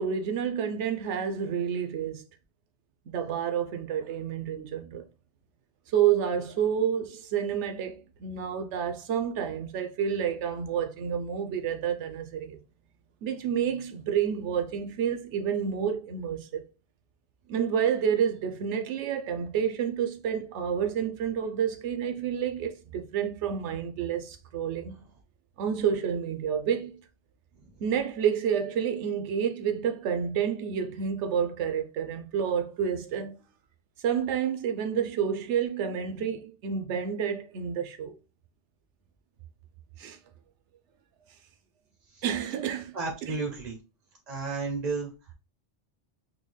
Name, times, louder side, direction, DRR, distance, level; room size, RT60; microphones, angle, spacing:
voice 1, 0.0-2.2 3.1-5.0 5.9-12.6 13.2-16.6 17.5-25.0 25.6-27.0 27.8-33.4 34.0-38.1 40.0-40.2 42.2-43.0 43.2-43.4, right 8 dB, 85° right, 0.9 m, -29 dB
voice 2, 42.9-43.8 44.3-45.1, right 4 dB, 50° right, 0.6 m, -32 dB
3.7 x 2.2 x 3.2 m
omnidirectional pair, 1.2 m